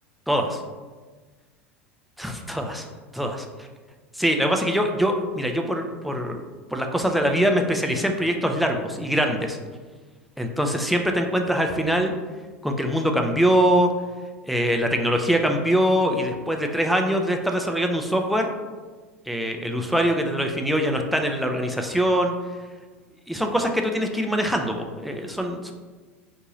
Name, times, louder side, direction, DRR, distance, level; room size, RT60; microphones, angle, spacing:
voice 1, 0.3-0.6 2.2-2.9 3.1-3.5 4.2-6.4 6.7-9.6 10.4-12.1 12.6-13.9 14.5-18.5 19.3-22.3 23.3-25.7, equal, ahead, 3 dB, 0.3 m, -23 dB
2.7 x 2.6 x 3.0 m, 1.4 s
figure-of-eight pair, 80°, 7 cm